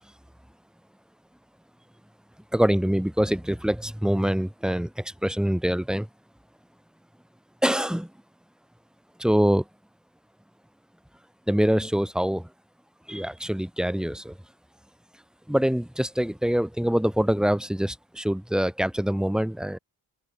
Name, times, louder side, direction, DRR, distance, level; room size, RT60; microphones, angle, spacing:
voice 1, 2.5-6.1 7.6-8.1 9.2-9.6 11.5-12.5 13.1-14.4 15.5-19.8, equal, ahead, 1.3 m, -24 dB
open air
wide cardioid pair, 70°, 47 cm